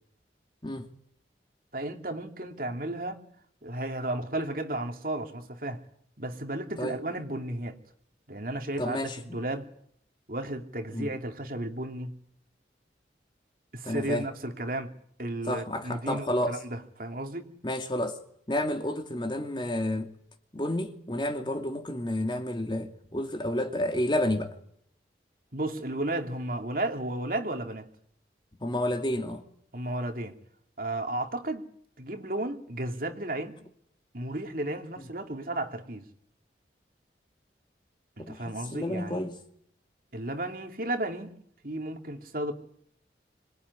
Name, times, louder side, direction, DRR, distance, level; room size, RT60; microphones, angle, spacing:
voice 1, 1.7-3.3 3.6-5.8 6.2-7.8 8.3-9.7 10.3-12.1 13.7-14.9 15.2-17.5 25.5-27.9 29.7-30.4 30.8-31.7 32.0-33.6 34.1-36.1 38.2-39.2 40.1-41.3 41.6-42.5, right 1 dB, 50° right, 2.8 m, -33 dB
voice 2, 8.8-9.2 10.9-11.1 13.8-14.3 15.4-16.6 17.6-18.2 18.5-20.1 20.5-24.6 28.6-29.4 38.2-39.3, left 1 dB, 25° left, 2.5 m, -30 dB
26.0 x 21.0 x 9.8 m
head